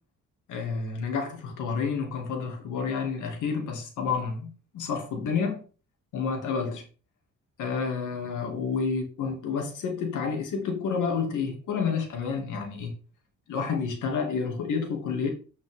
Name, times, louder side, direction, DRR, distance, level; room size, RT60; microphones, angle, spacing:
voice 1, 0.5-5.6 6.1-6.8 7.6-13.0 13.5-15.3, left 5 dB, 80° left, 2.5 m, -29 dB
8.5 x 6.3 x 3.7 m
cardioid pair, 90°, 30 cm